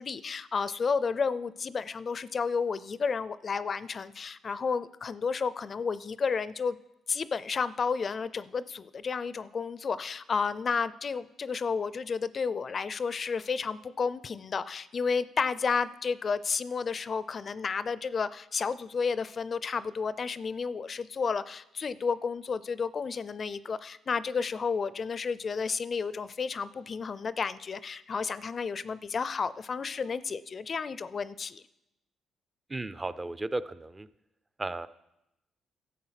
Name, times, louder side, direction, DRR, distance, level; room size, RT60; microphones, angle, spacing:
voice 1, 0.0-6.8 7.1-31.6, left 5 dB, 45° left, 16 dB, 0.4 m, -31 dB
voice 2, 32.7-34.1 34.6-34.9, right 2 dB, 20° right, 15 dB, 0.5 m, -34 dB
13.0 x 7.4 x 5.8 m, 0.89 s
cardioid pair, 90°, 0 cm